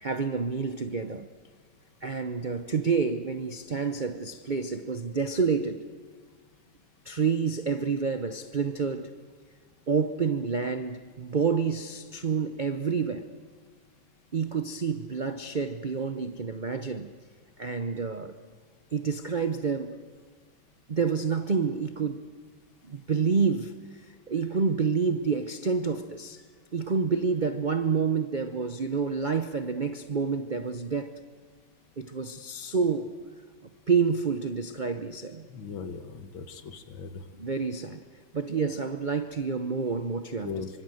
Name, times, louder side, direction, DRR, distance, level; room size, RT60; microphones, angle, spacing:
voice 1, 0.0-1.3 2.0-5.9 7.0-9.1 9.9-13.3 14.3-17.1 17.6-18.4 18.9-20.0 20.9-22.2 22.8-23.7 24.3-26.4 26.7-31.1 32.0-33.1 33.9-35.5 37.4-38.0 38.3-40.6, right 5 dB, 90° right, 0.4 m, -28 dB
voice 2, 35.5-37.2 40.4-40.7, left 5 dB, 70° left, 2.2 m, -38 dB
25.5 x 24.5 x 7.8 m
omnidirectional pair, 2.2 m